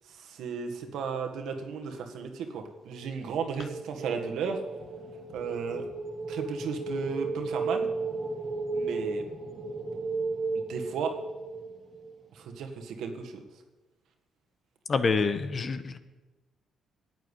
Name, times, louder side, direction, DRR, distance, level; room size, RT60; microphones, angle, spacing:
voice 1, 0.1-4.6 5.3-5.8 6.3-7.9 8.7-9.3 10.7-11.2 12.3-13.4, right 6 dB, 80° right, 4 dB, 1.7 m, -34 dB
sound 1, 3.4-12.3, right 3 dB, 45° right, 2.0 m, -34 dB
voice 2, 14.9-16.0, left 4 dB, 40° left, 11 dB, 1.0 m, -27 dB
11.0 x 9.2 x 8.3 m, 1.2 s
cardioid pair, 90°, 0 cm